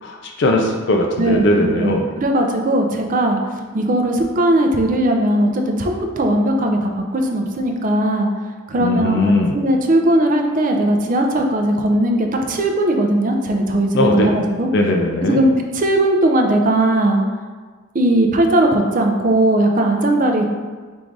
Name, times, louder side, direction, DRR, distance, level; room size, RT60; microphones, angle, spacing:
voice 1, 0.0-2.1 8.8-9.6 13.9-14.3 14.7-15.4, left 2 dB, 55° left, 1 dB, 0.4 m, -18 dB
voice 2, 1.2-3.4 3.7-8.3 8.7-14.7 15.2-17.2 17.9-20.5, right 1 dB, 40° right, 2 dB, 0.4 m, -18 dB
3.6 x 2.5 x 4.6 m, 1.5 s
head